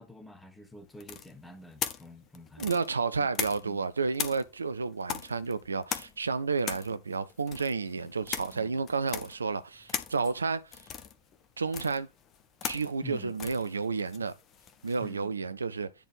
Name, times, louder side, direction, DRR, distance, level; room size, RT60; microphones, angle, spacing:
voice 1, 0.0-2.7 3.6-3.9 6.9-7.0 8.5-8.8 13.0-13.3 14.2-14.3 15.0-15.6, left 2 dB, 10° left, 1.4 m, -48 dB
sound 1, 1.0-3.8 4.1-15.1, left 8 dB, 30° left, 1.0 m, -39 dB
voice 2, 2.6-10.6 11.6-12.1 12.6-14.3 14.8-15.9, right 4 dB, 75° right, 0.6 m, -31 dB
10.5 x 4.4 x 3.6 m
figure-of-eight pair, 90°, 0 cm